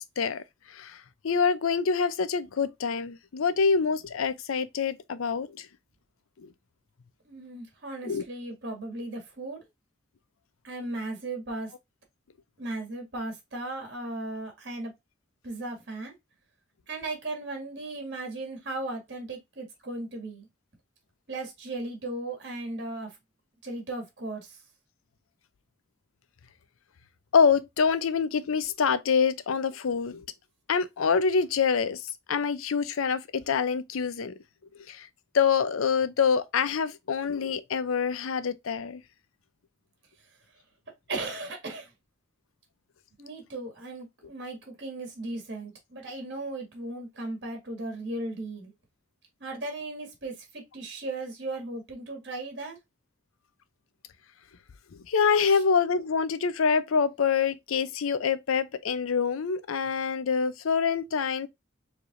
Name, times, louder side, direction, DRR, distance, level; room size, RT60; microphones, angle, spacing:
voice 1, 1.2-5.7 6.4-6.5 8.0-8.2 27.3-30.2 30.7-32.0 32.3-34.3 34.9-35.1 35.3-39.0 55.1-61.5, left 6 dB, 90° left, 0.5 m, -26 dB
voice 2, 7.3-9.6 10.6-11.7 12.6-14.9 15.4-16.1 16.9-20.5 21.3-23.2 23.6-24.6 41.1-41.9 43.2-48.7 49.4-52.8 55.5-55.6, right 2 dB, 55° right, 1.9 m, -36 dB
4.7 x 3.4 x 2.5 m
head